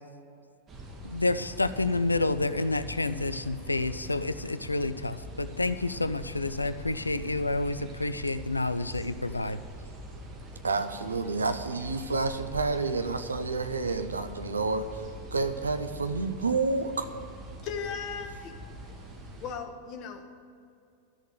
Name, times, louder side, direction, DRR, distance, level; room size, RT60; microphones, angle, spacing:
sound 1, 0.7-19.5, right 1 dB, 25° right, 1.7 m, -43 dB
voice 1, 1.0-9.6, left 2 dB, 80° left, 13 dB, 0.4 m, -29 dB
voice 2, 10.6-17.1, right 3 dB, 75° right, 9 dB, 0.8 m, -29 dB
voice 3, 17.6-18.5 19.4-20.3, left 6 dB, 40° left, 4 dB, 1.5 m, -37 dB
12.5 x 6.5 x 9.2 m, 2.4 s
figure-of-eight pair, 90°, 0 cm